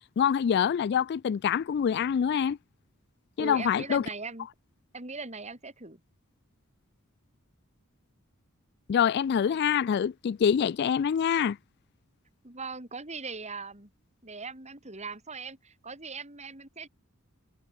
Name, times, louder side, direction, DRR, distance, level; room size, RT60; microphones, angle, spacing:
voice 1, 0.0-2.6 3.4-4.0 8.9-11.6, left 8 dB, 50° left, 0.3 m, -25 dB
voice 2, 3.4-4.5 4.9-6.0 12.4-13.9 14.2-16.9, right 4 dB, 30° right, 4.8 m, -40 dB
head